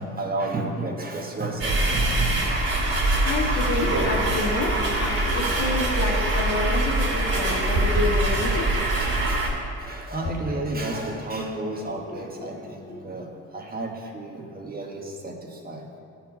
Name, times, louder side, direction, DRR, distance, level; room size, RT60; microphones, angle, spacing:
voice 1, 0.0-2.6 3.0-3.6 5.2-5.8 9.2-15.9, right 2 dB, 30° right, 1 dB, 1.4 m, -32 dB
sound 1, 1.6-9.5, right 2 dB, 50° right, 2.6 m, -23 dB
voice 2, 3.2-8.8 12.4-12.5 12.9-13.0, left 2 dB, 85° left, -2 dB, 2.0 m, -28 dB
12.5 x 6.1 x 5.1 m, 2.7 s
cardioid pair, 90°, 30 cm